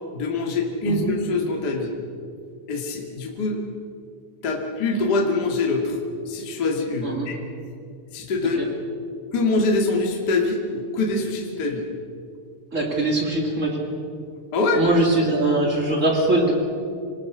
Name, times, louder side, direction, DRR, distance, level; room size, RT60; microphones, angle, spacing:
voice 1, 0.1-1.9 2.7-3.6 4.4-6.0 6.2-7.4 8.1-8.6 9.3-10.6 10.9-11.8 14.5-14.8, left 3 dB, 35° left, 0 dB, 1.7 m, -24 dB
voice 2, 12.7-13.9 14.7-16.5, right 2 dB, 35° right, 0 dB, 1.2 m, -22 dB
28.0 x 19.0 x 6.4 m, 2.5 s
omnidirectional pair, 6.0 m